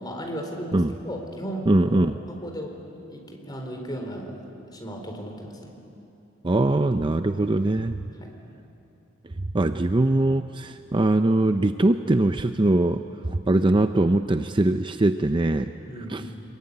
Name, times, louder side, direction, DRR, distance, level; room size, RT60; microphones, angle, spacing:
voice 1, 0.0-2.7 3.1-4.3 4.7-5.7 8.2-8.3 15.9-16.3, equal, 20° left, 2 dB, 4.2 m, -35 dB
voice 2, 1.7-2.2 6.4-8.0 9.4-15.7 16.1-16.3, right 2 dB, 25° right, 9 dB, 0.5 m, -22 dB
26.0 x 22.5 x 9.7 m, 2.8 s
head